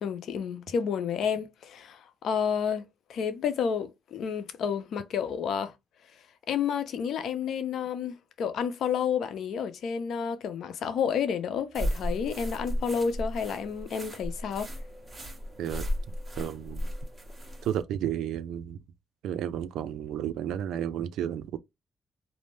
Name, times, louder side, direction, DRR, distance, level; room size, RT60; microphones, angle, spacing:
voice 1, 0.0-2.8 3.1-5.7 6.5-14.7, left 7 dB, 70° left, 0.6 m, -30 dB
sound 1, 11.7-17.8, equal, 30° right, 1.2 m, -35 dB
voice 2, 16.4-16.9 17.6-18.8 19.2-21.6, right 10 dB, 80° right, 0.3 m, -32 dB
2.6 x 2.0 x 3.1 m
cardioid pair, 90°, 0 cm